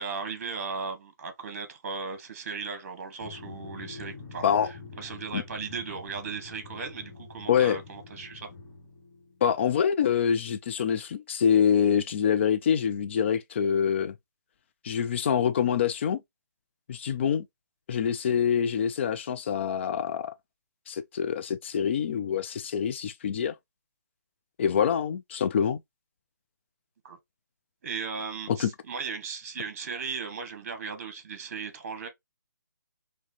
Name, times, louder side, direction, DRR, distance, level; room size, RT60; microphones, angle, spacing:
voice 1, 0.0-8.5 27.0-27.2 27.8-32.1, right 5 dB, 45° right, 1.1 m, -37 dB
Drum, 3.2-9.7, left 4 dB, 25° left, 1.4 m, -45 dB
voice 2, 9.4-14.1 14.8-16.2 16.9-17.4 17.9-20.3 20.9-23.5 24.6-25.8 28.5-28.7, left 8 dB, 40° left, 0.4 m, -25 dB
4.7 x 2.2 x 2.9 m
figure-of-eight pair, 145°, 10 cm